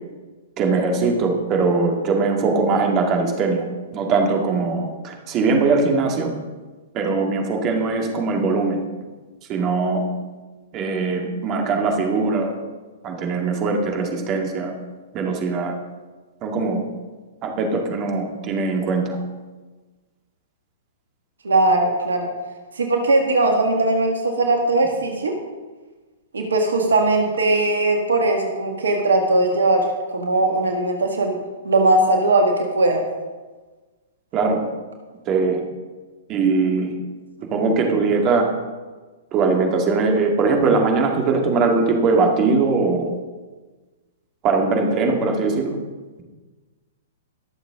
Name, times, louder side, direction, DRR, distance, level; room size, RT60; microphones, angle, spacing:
voice 1, 0.6-3.6 3.9-6.3 6.9-8.8 9.5-10.1 10.7-12.5 13.0-14.7 15.1-15.7 16.4-16.8 17.4-19.2 34.3-34.6 35.3-35.6 36.3-36.9 37.5-38.5 39.3-43.2 44.4-45.8, right 4 dB, 30° right, 2 dB, 2.1 m, -21 dB
voice 2, 21.4-22.3 22.8-25.3 26.3-29.8 30.1-31.4 31.6-33.0, right 2 dB, 75° right, 3 dB, 1.9 m, -19 dB
21.0 x 7.1 x 3.8 m, 1.3 s
figure-of-eight pair, 115°, 0 cm